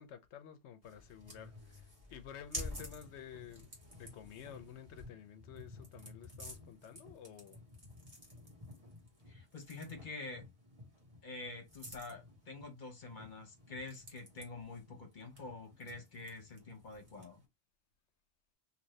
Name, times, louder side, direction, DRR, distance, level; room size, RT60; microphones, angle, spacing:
voice 1, 0.0-3.7 3.9-7.6, left 9 dB, 80° left, 0.9 m, -51 dB
sound 1, 0.8-17.4, left 1 dB, 35° right, 1.3 m, -51 dB
voice 2, 9.3-10.4 11.2-17.4, left 3 dB, 45° left, 1.2 m, -47 dB
2.8 x 2.7 x 3.1 m
omnidirectional pair, 1.2 m